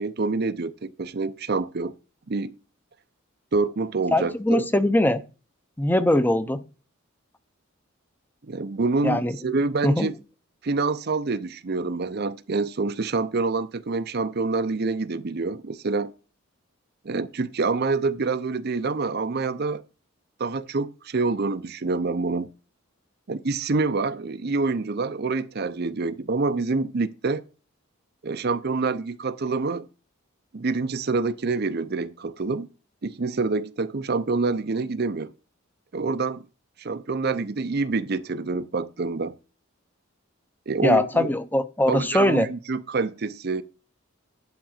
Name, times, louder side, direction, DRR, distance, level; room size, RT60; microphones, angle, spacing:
voice 1, 0.0-1.9 2.3-2.5 3.5-4.7 8.4-10.1 10.6-16.1 17.0-19.8 20.4-22.5 23.3-27.4 28.2-29.9 30.5-32.7 33.0-35.3 35.9-36.4 36.8-39.4 40.7-41.3 41.9-43.6, right 3 dB, 50° right, 0.6 m, -26 dB
voice 2, 4.1-5.2 5.8-6.6 9.0-9.4 9.8-10.1 40.8-42.5, left 1 dB, 10° left, 0.7 m, -21 dB
11.5 x 3.8 x 6.4 m
head